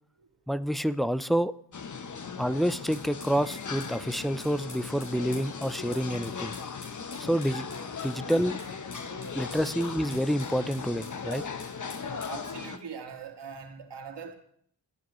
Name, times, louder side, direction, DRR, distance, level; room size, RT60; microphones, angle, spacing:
voice 1, 0.5-1.5 2.4-6.5 7.2-7.7 8.0-8.6 9.3-11.4, equal, ahead, 13 dB, 0.6 m, -28 dB
sound 1, 1.7-12.8, left 5 dB, 45° left, 1.1 m, -38 dB
sound 2, 2.9-12.4, left 2 dB, 65° left, 5.7 m, -49 dB
voice 2, 12.3-14.3, right 6 dB, 75° right, 3 dB, 2.1 m, -43 dB
18.0 x 10.0 x 3.2 m, 0.65 s
cardioid pair, 55°, 42 cm